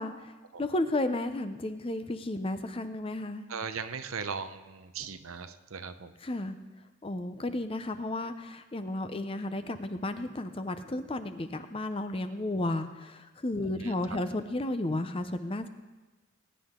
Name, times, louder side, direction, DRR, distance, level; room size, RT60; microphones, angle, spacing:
voice 1, 0.0-0.3 0.6-3.5 6.2-6.6 7.0-15.7, left 2 dB, 25° left, 9 dB, 0.6 m, -33 dB
voice 2, 3.5-6.1 13.7-13.9, right 5 dB, 75° right, 10 dB, 0.7 m, -38 dB
21.0 x 9.9 x 3.8 m, 1.2 s
head